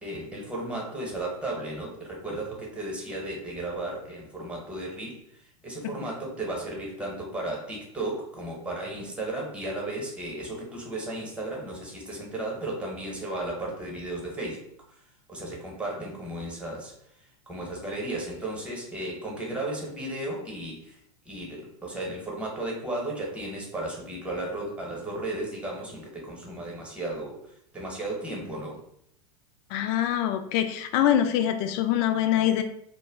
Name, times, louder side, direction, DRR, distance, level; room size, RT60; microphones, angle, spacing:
voice 1, 0.0-14.6 15.3-16.9 17.5-21.0 21.2-27.4 27.7-28.8, right 1 dB, 5° right, -2 dB, 0.9 m, -34 dB
voice 2, 29.7-32.6, left 11 dB, 50° left, 8 dB, 0.4 m, -24 dB
2.2 x 2.0 x 3.4 m, 0.72 s
hypercardioid pair, 95°, 18 cm